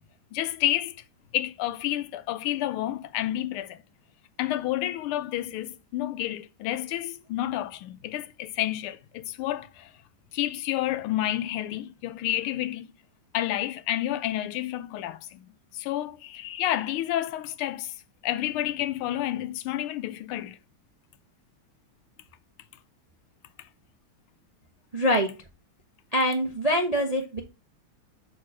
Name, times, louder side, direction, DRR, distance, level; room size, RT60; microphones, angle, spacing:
voice 1, 0.3-1.0 1.3-3.8 4.4-9.9 10.3-12.9 13.3-15.5 15.7-17.9 18.2-20.6, left 13 dB, 85° left, 1.5 m, -30 dB
voice 2, 24.9-25.3 26.1-27.4, equal, 35° right, 0.5 m, -24 dB
6.5 x 4.1 x 6.1 m
omnidirectional pair, 2.3 m